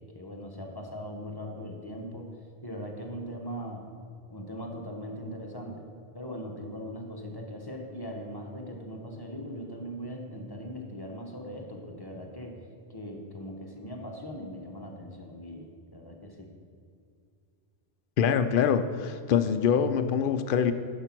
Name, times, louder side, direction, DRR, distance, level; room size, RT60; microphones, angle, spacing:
voice 1, 0.0-2.4 2.6-3.9 4.3-5.9 6.1-12.6 12.9-16.5, equal, 20° left, 1 dB, 1.0 m, -40 dB
voice 2, 18.2-20.7, left 7 dB, 60° left, 9 dB, 0.7 m, -24 dB
11.0 x 5.1 x 6.0 m, 2.3 s
omnidirectional pair, 1.1 m